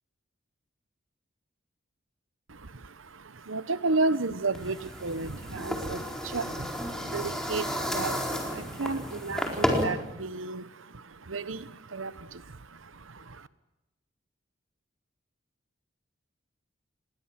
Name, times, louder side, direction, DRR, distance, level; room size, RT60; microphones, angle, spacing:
voice 1, 2.5-13.5, right 3 dB, 80° right, 15 dB, 1.1 m, -33 dB
sound 1, 4.5-9.8, equal, 5° left, 4.3 m, -32 dB
29.0 x 21.5 x 7.6 m, 0.95 s
head